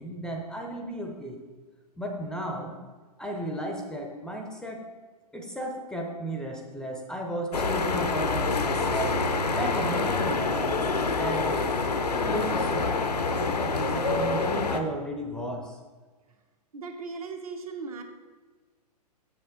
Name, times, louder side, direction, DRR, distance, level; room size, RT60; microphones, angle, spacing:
voice 1, 0.0-1.4 2.0-2.8 3.2-4.9 5.3-9.2 9.5-11.7 12.2-13.0 13.3-15.8, right 1 dB, 5° left, 1 dB, 0.6 m, -34 dB
sound 1, 7.5-14.8, left 3 dB, 75° left, 0.7 m, -26 dB
voice 2, 16.7-18.0, right 4 dB, 60° right, 3 dB, 1.3 m, -38 dB
7.2 x 7.1 x 3.8 m, 1.4 s
figure-of-eight pair, 110°, 20 cm